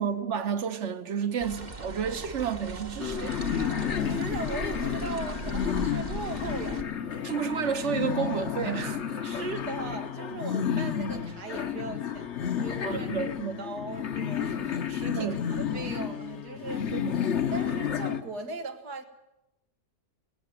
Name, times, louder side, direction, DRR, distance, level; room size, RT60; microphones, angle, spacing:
voice 1, 0.0-3.4 7.2-9.0 12.8-13.6 15.1-15.4 16.9-17.2, right 7 dB, 50° right, 1.4 m, -31 dB
sound 1, 1.4-6.8, right 2 dB, 30° right, 1.2 m, -39 dB
sound 2, 3.0-18.2, left 8 dB, 50° left, 1.2 m, -31 dB
voice 2, 3.9-6.8 9.2-13.3 13.6-17.0 17.5-19.0, right 3 dB, 90° right, 2.3 m, -39 dB
19.0 x 17.5 x 9.1 m
omnidirectional pair, 1.7 m